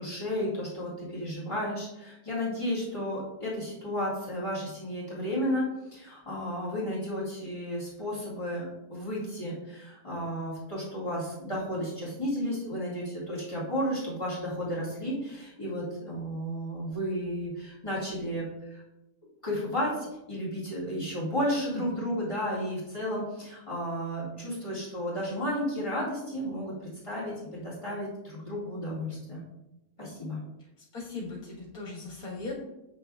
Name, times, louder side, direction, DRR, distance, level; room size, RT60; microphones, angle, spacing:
voice 1, 0.0-18.8 19.4-29.4 30.0-30.4, equal, 20° left, -7 dB, 1.9 m, -33 dB
voice 2, 21.7-22.1 30.9-32.6, left 3 dB, 70° left, -3 dB, 1.9 m, -38 dB
7.1 x 5.7 x 2.3 m, 0.93 s
omnidirectional pair, 1.7 m